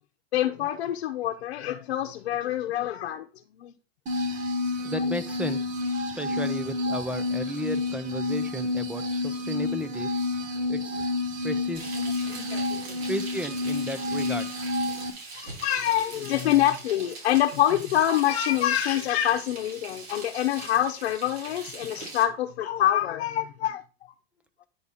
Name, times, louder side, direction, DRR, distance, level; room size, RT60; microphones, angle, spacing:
voice 1, 0.3-3.3 3.6-3.7 12.0-13.0 15.3-23.8, left 12 dB, 75° left, 0.9 m, -26 dB
sound 1, 4.1-15.1, left 2 dB, 25° right, 1.4 m, -29 dB
voice 2, 4.8-5.7 6.2-10.1 10.7-11.0 11.4-12.0 13.1-14.5, equal, 5° right, 0.4 m, -34 dB
Frying (food), 11.7-22.2, right 3 dB, 90° right, 4.1 m, -42 dB
9.5 x 3.5 x 4.1 m
hypercardioid pair, 135°, 31 cm